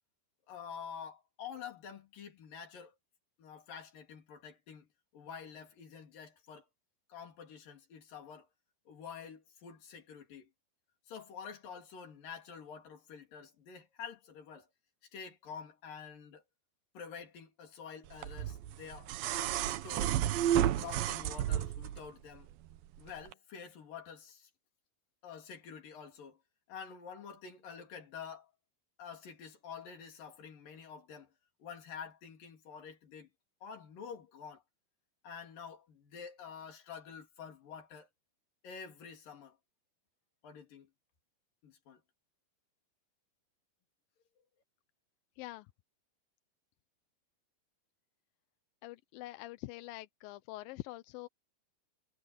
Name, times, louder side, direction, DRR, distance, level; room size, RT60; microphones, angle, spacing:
voice 1, 0.5-2.9 3.4-4.9 5.1-6.7 7.1-8.5 8.9-10.5 11.1-14.7 15.1-16.4 16.9-19.1 19.6-20.2 20.6-22.5 23.0-24.5 25.2-26.4 26.7-28.5 29.0-31.3 31.6-33.3 33.6-34.6 35.2-38.1 38.6-39.6 40.4-40.9 41.6-42.0, left 6 dB, 60° left, 4.7 m, -48 dB
sound 1, 18.2-22.0 23.3-23.4, right 11 dB, 75° right, 2.6 m, -31 dB
voice 2, 45.4-45.7 48.8-51.3, left 17 dB, 80° left, 2.3 m, -45 dB
omnidirectional pair, 4.5 m